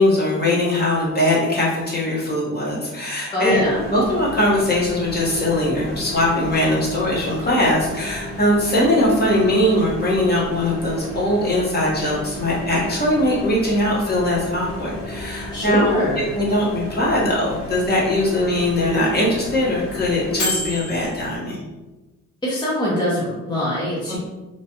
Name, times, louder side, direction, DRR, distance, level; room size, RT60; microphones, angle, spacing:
voice 1, 0.0-3.6 3.9-21.6 24.1-24.2, left 1 dB, 35° left, -5 dB, 1.1 m, -21 dB
voice 2, 3.3-3.8 15.5-16.3 22.4-24.2, left 1 dB, 15° left, -7 dB, 0.8 m, -22 dB
Microwave oven, 3.6-21.4, left 1 dB, 70° left, 1.4 m, -33 dB
3.0 x 2.3 x 2.8 m, 1.1 s
cardioid pair, 90°, 30 cm